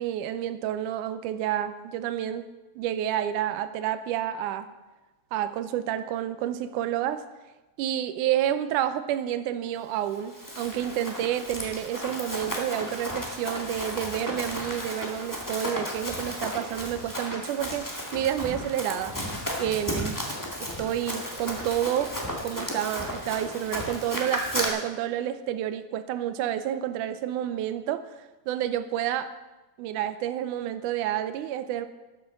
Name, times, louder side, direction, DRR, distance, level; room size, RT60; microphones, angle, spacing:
voice 1, 0.0-2.4 2.8-4.7 5.3-7.2 7.8-19.2 19.6-20.2 20.6-22.2 22.4-29.3 29.8-31.9, right 11 dB, 75° right, 11 dB, 2.0 m, -29 dB
Run, 10.1-24.7, equal, 10° left, 0.9 m, -34 dB
12.0 x 8.0 x 6.6 m, 1.1 s
omnidirectional pair, 3.9 m